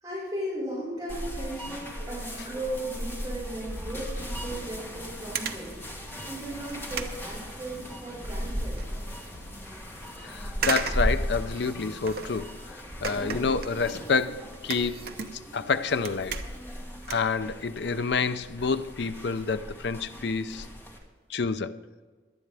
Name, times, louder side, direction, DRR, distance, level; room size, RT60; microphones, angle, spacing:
voice 1, 0.0-8.8, right 1 dB, 20° right, -8 dB, 4.9 m, -36 dB
sound 1, 1.1-21.0, equal, 15° left, 1.6 m, -37 dB
sound 2, 4.3-12.4, equal, 35° left, 2.5 m, -49 dB
sound 3, 4.7-4.9 5.3-5.7 6.2-6.3 6.7-8.0 8.4-8.9 9.3-9.4 10.6-12.5 13.0-15.7 15.9-16.8 17.0-18.0 18.3-18.5 19.2-19.3 19.6-19.7 19.9-20.0 20.2-20.5 20.9-21.0 21.3-21.4, right 6 dB, 55° right, 0.8 m, -36 dB
voice 2, 10.2-12.5 13.0-15.0 15.5-16.4 17.1-20.7 21.3-21.8, left 5 dB, 65° left, 13 dB, 0.5 m, -28 dB
18.0 x 11.5 x 3.4 m, 1.4 s
head